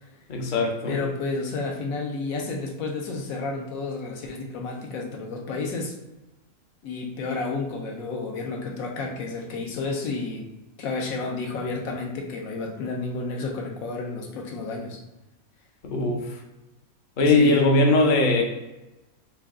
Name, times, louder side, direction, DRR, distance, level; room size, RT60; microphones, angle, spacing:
voice 1, 0.3-1.0 15.8-16.4 17.2-18.4, left 2 dB, 50° left, 1 dB, 0.6 m, -20 dB
voice 2, 0.9-5.9 6.8-10.5 10.8-15.0 17.3-17.6, left 3 dB, 70° left, 1 dB, 1.0 m, -31 dB
3.9 x 2.2 x 3.6 m, 1.0 s
omnidirectional pair, 1.6 m